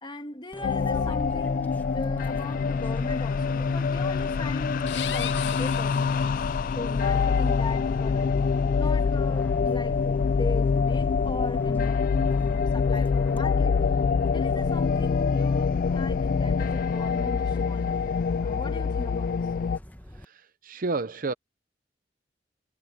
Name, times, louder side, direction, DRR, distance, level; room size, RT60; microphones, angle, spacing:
voice 1, 0.0-8.3 8.7-12.0 12.4-13.8 14.3-18.0 18.4-19.3, left 1 dB, 25° left, 2.4 m, -39 dB
Fixed-wing aircraft airplane, 0.5-20.2, equal, 10° left, 1.1 m, -43 dB
sound 1, 0.6-19.8, left 5 dB, 50° left, 0.3 m, -25 dB
sound 2, 4.8-6.8, left 10 dB, 90° left, 0.8 m, -37 dB
voice 2, 20.1-21.3, right 3 dB, 50° right, 0.7 m, -31 dB
head